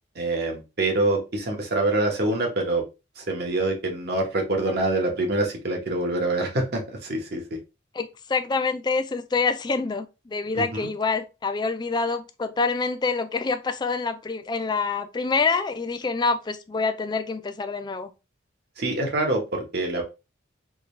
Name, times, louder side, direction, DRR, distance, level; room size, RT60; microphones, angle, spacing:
voice 1, 0.1-2.8 3.2-7.4 10.5-10.9 18.8-20.0, right 2 dB, 55° right, 1.0 m, -25 dB
voice 2, 7.9-18.1, left 4 dB, 20° left, 0.3 m, -26 dB
3.6 x 2.3 x 3.1 m
head